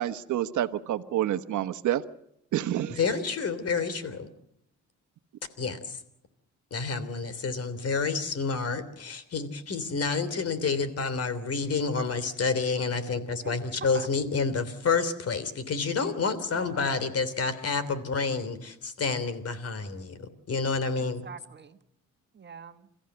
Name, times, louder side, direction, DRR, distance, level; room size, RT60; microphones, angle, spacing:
voice 1, 0.0-2.0 2.5-3.1, right 12 dB, 75° right, 11 dB, 1.2 m, -28 dB
voice 2, 3.0-4.3 5.6-6.0 6.7-21.2, left 4 dB, 50° left, 13 dB, 3.2 m, -29 dB
voice 3, 13.4-14.1 16.5-17.0 21.2-21.8 22.3-22.9, right 6 dB, 35° right, 9 dB, 1.6 m, -44 dB
29.5 x 15.0 x 8.0 m, 0.78 s
cardioid pair, 90°, 30 cm